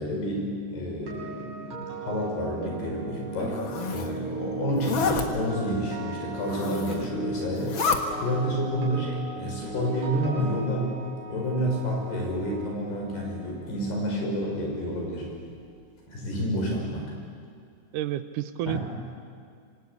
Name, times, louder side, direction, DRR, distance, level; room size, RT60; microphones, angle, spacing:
voice 1, 0.0-7.8 8.2-11.0 11.3-15.3 16.1-17.1 18.7-18.8, equal, 75° left, -1 dB, 8.0 m, -29 dB
sound 1, 0.8-14.9 15.2-15.5, right 3 dB, 50° right, 7.6 m, -38 dB
Zipper (clothing), 3.3-4.1 4.7-5.3 6.4-7.1 7.5-8.0, left 5 dB, 50° left, 1.5 m, -29 dB
voice 2, 8.7-9.1 17.9-18.8, right 13 dB, 80° right, 12 dB, 1.9 m, -31 dB
27.0 x 25.5 x 8.5 m, 2.3 s
omnidirectional pair, 4.7 m